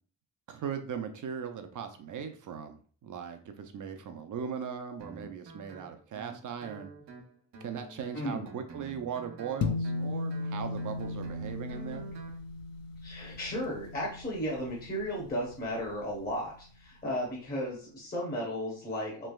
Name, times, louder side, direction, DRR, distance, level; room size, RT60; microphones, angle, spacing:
voice 1, 0.5-6.9 7.6-12.1, right 7 dB, 50° right, 7 dB, 0.5 m, -39 dB
Guitar, 5.0-12.4, right 3 dB, 90° right, 1.0 m, -49 dB
voice 2, 8.1-8.5 13.0-19.3, equal, 20° left, -4 dB, 0.9 m, -34 dB
sound 1, 9.6-16.2, left 3 dB, 55° left, 0.5 m, -37 dB
3.3 x 3.0 x 2.3 m, 0.43 s
wide cardioid pair, 145°, 41 cm